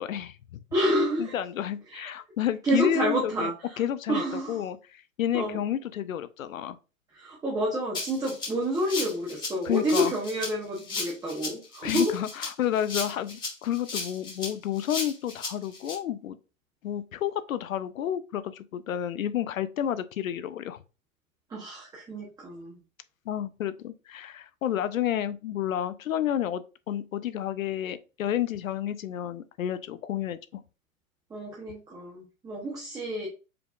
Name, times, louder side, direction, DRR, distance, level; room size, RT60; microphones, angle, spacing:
voice 1, 0.0-0.6 1.2-3.5 3.8-4.2 4.5-6.8 9.6-10.1 11.8-16.4 16.8-20.8 23.3-30.6, left 11 dB, 70° left, 0.5 m, -30 dB
voice 2, 0.7-1.3 1.9-2.1 2.6-3.8 4.1-4.6 5.3-5.6 7.1-12.1 21.5-22.8 31.3-33.3, equal, 10° right, 0.9 m, -29 dB
Rattle (instrument), 7.9-15.9, left 3 dB, 10° left, 1.7 m, -35 dB
4.8 x 3.4 x 2.3 m
figure-of-eight pair, 120°, 43 cm